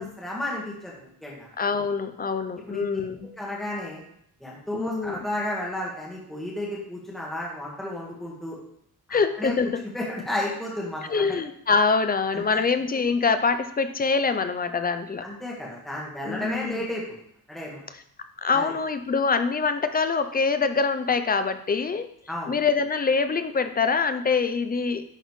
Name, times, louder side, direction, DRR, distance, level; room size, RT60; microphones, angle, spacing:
voice 1, 0.0-1.5 2.7-2.8 3.2-4.0 4.4-8.6 9.1-9.5 9.9-11.3 12.3-12.6 15.2-17.0 17.5-17.8 18.5-18.7 22.3-22.5, left 1 dB, ahead, -4 dB, 1.5 m, -33 dB
voice 2, 1.6-3.3 4.7-5.2 9.1-9.8 11.1-15.3 16.3-16.8 18.4-22.1 22.5-25.0, left 5 dB, 25° left, 9 dB, 0.4 m, -24 dB
10.5 x 4.1 x 3.1 m, 0.70 s
wide cardioid pair, 165°, 39 cm